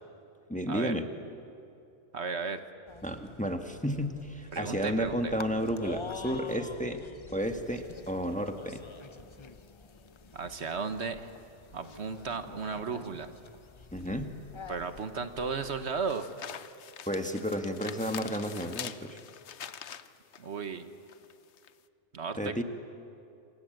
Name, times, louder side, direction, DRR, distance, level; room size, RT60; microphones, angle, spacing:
voice 1, 0.5-1.0 3.0-7.0 7.3-8.8 13.9-14.3 17.1-19.2 22.4-22.6, equal, 5° left, 6 dB, 1.4 m, -32 dB
voice 2, 2.1-2.6 4.5-5.3 10.3-11.3 11.7-13.3 14.7-16.3 20.4-20.9 22.1-22.6, right 5 dB, 65° right, 9 dB, 1.4 m, -35 dB
sound 1, 2.9-16.1, left 4 dB, 30° left, 0.7 m, -47 dB
sound 2, 7.4-21.8, left 8 dB, 70° left, 1.1 m, -47 dB
28.0 x 26.5 x 7.9 m, 2.7 s
omnidirectional pair, 1.2 m